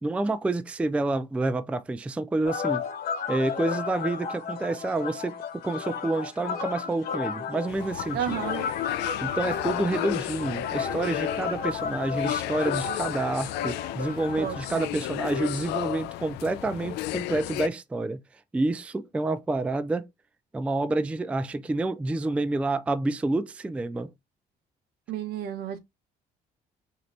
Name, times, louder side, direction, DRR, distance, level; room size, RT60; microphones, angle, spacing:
voice 1, 0.0-2.8 3.3-8.4 9.2-18.2 18.5-20.1 20.5-24.1, right 2 dB, 5° right, 0.3 m, -28 dB
sound 1, 2.4-14.9, left 7 dB, 65° left, 1.2 m, -33 dB
sound 2, 7.7-17.7, left 15 dB, 85° left, 0.4 m, -34 dB
voice 2, 8.1-8.6 14.4-14.9 25.1-25.8, right 9 dB, 70° right, 0.9 m, -31 dB
3.2 x 2.8 x 3.9 m
cardioid pair, 110°, 17 cm